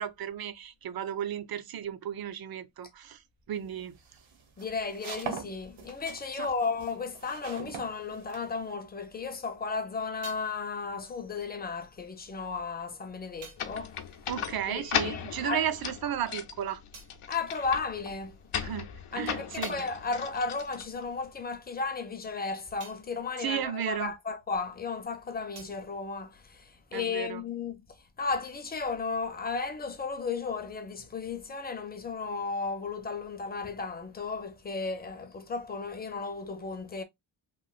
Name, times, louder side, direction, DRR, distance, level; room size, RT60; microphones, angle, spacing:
voice 1, 0.0-3.2 3.5-4.0 6.3-6.5 14.3-16.8 18.6-19.9 23.4-24.1 26.9-27.4, right 9 dB, 50° right, 0.4 m, -34 dB
sound 1, 3.6-8.8, right 6 dB, 70° right, 0.8 m, -42 dB
voice 2, 4.6-14.0 14.7-15.7 17.3-18.4 19.1-27.8 28.2-37.0, left 4 dB, 20° left, 0.4 m, -34 dB
sound 2, 13.6-21.4, left 8 dB, 80° left, 0.6 m, -37 dB
sound 3, 16.9-18.4 18.8-24.8 25.0-27.1, right 4 dB, 85° right, 1.1 m, -55 dB
3.1 x 2.5 x 2.3 m
wide cardioid pair, 140°, 50 cm